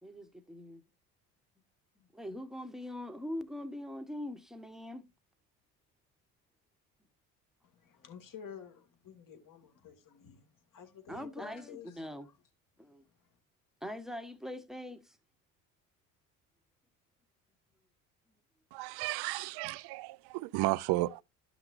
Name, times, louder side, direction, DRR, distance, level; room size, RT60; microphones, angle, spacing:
voice 1, 0.0-0.8 2.0-5.1 11.1-12.3 12.8-13.0 13.8-15.2, left 1 dB, ahead, 1.2 m, -42 dB
voice 2, 7.6-12.0, left 8 dB, 45° left, 2.2 m, -51 dB
voice 3, 18.7-21.2, right 18 dB, 65° right, 0.6 m, -33 dB
12.0 x 6.1 x 2.6 m
hypercardioid pair, 70°, 42 cm